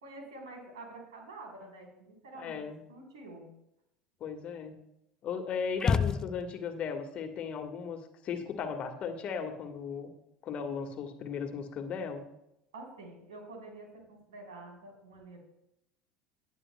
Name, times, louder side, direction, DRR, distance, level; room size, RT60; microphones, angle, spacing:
voice 1, 0.0-3.5 12.7-15.4, right 2 dB, 75° right, 0 dB, 3.7 m, -48 dB
voice 2, 2.4-2.8 4.2-4.8 5.2-10.1 10.4-12.2, left 6 dB, 45° left, 5 dB, 1.6 m, -36 dB
sound 1, 5.8-6.8, left 5 dB, 20° left, 0.3 m, -29 dB
18.5 x 9.0 x 2.2 m, 0.82 s
hypercardioid pair, 75°, 3 cm